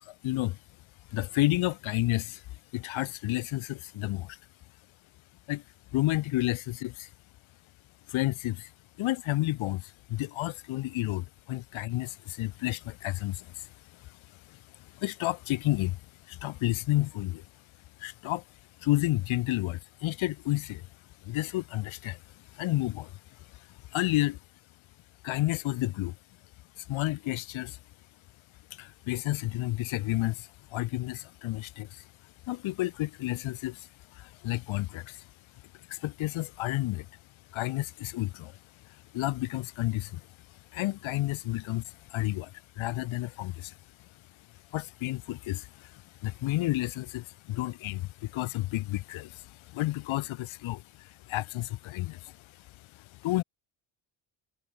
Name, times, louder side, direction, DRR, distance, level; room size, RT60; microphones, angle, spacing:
voice 1, 0.1-0.6 1.1-2.4 2.7-4.4 5.5-5.6 5.9-7.1 8.1-8.7 9.0-14.2 14.5-16.0 16.3-17.4 18.0-18.4 18.8-20.9 21.2-22.2 22.5-24.4 25.2-26.2 26.8-27.8 28.7-32.1 32.5-35.3 35.7-37.1 37.5-38.6 38.9-40.3 40.7-43.8 44.7-53.4, left 17 dB, 70° left, 0.8 m, -31 dB
cardioid pair, 125°, 50 cm